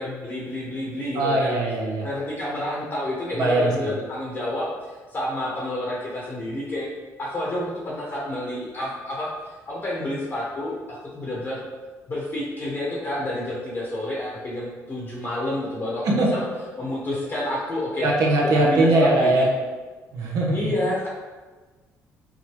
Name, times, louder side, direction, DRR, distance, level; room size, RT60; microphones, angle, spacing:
voice 1, 0.0-1.5 2.0-4.7 5.1-9.3 9.7-11.6 12.1-16.4 16.8-18.1 18.4-19.4 20.5-21.1, left 1 dB, 35° left, -5 dB, 1.0 m, -29 dB
voice 2, 1.1-2.1 3.4-3.9 16.0-16.3 18.0-19.5 20.1-20.6, right 2 dB, 65° right, -2 dB, 0.8 m, -20 dB
4.8 x 2.1 x 3.0 m, 1.3 s
cardioid pair, 95°, 6 cm